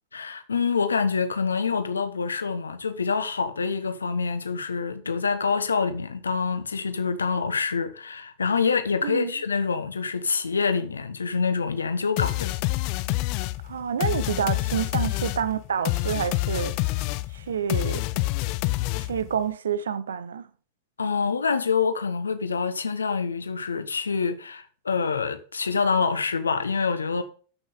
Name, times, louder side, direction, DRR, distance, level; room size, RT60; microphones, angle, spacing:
voice 1, 0.1-12.5 21.0-27.2, left 5 dB, 75° left, 1.4 m, -26 dB
sound 1, 12.2-19.4, left 20 dB, 45° left, 0.6 m, -27 dB
voice 2, 13.6-16.7 17.3-18.2 18.9-20.5, right 7 dB, 65° right, 0.9 m, -28 dB
13.0 x 6.1 x 5.2 m
figure-of-eight pair, 90°, 0 cm